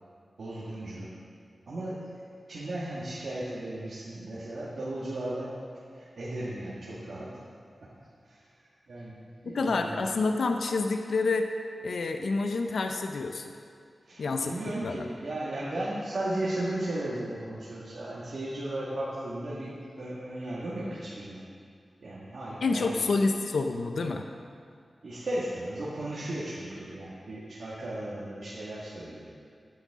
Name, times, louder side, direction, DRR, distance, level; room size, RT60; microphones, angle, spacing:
voice 1, 0.4-1.2 1.7-2.1 2.5-5.6 5.9-7.4 7.8-7.9 8.2-8.5 8.9-10.1 14.1-21.5 22.0-23.1 25.0-29.2, right 1 dB, 75° right, -8 dB, 1.7 m, -35 dB
voice 2, 9.4-11.5 11.8-13.5 14.2-14.5 14.8-15.1 22.6-24.2, left 3 dB, 85° left, 5 dB, 0.5 m, -28 dB
13.0 x 9.5 x 3.7 m, 2.2 s
wide cardioid pair, 85°, 0 cm